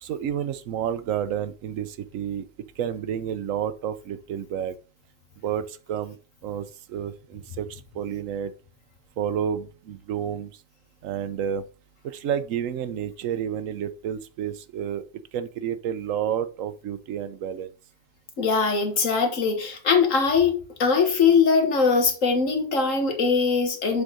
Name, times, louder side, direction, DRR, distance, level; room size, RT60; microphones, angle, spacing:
voice 1, 0.0-2.5 2.8-4.8 5.4-6.2 6.4-8.5 9.2-10.5 11.0-11.6 12.0-15.0 15.3-17.7, right 9 dB, 90° right, 1.1 m, -30 dB
voice 2, 18.4-24.0, left 5 dB, 85° left, 1.9 m, -21 dB
7.0 x 4.1 x 5.0 m
omnidirectional pair, 1.3 m